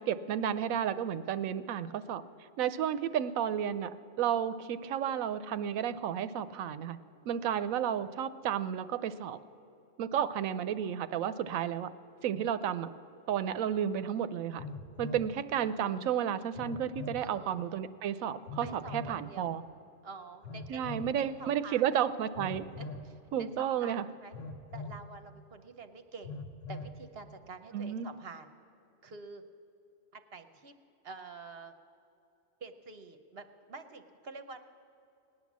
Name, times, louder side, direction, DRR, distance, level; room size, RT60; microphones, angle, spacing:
voice 1, 0.0-2.2 2.6-3.9 4.2-7.0 7.3-9.4 10.0-11.9 12.2-12.9 13.3-14.6 15.0-19.6 20.7-22.6 23.3-24.0 27.7-28.1, right 9 dB, 85° right, 14 dB, 1.0 m, -32 dB
Telephone, 13.3-13.4 14.6-15.3 16.6-17.3 18.5-19.2 20.4-21.1 22.3-23.1 24.3-25.0 26.2-27.0, left 3 dB, 70° left, 1.1 m, -42 dB
voice 2, 17.2-17.6 18.6-19.5 20.0-20.8 21.1-21.8 22.8-24.3 24.7-26.4 26.7-28.5 29.0-29.4 30.1-30.8 31.0-31.7 32.6-34.6, right 4 dB, 55° right, 8 dB, 0.9 m, -48 dB
18.0 x 9.8 x 7.3 m, 2.7 s
omnidirectional pair, 1.4 m